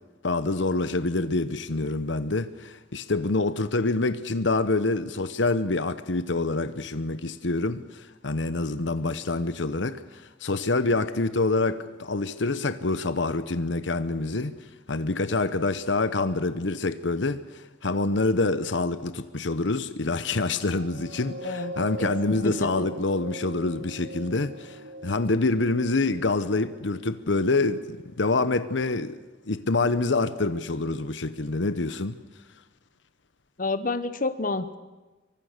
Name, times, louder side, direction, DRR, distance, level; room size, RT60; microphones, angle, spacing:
voice 1, 0.2-14.5 14.9-29.2 29.4-32.2, left 3 dB, 75° left, 1.0 m, -26 dB
sound 1, 20.5-27.2 27.8-27.9, right 1 dB, 80° right, 2.2 m, -40 dB
voice 2, 21.4-21.7 22.0-22.9 33.6-34.8, left 3 dB, 45° left, 1.0 m, -29 dB
25.5 x 24.0 x 6.7 m
head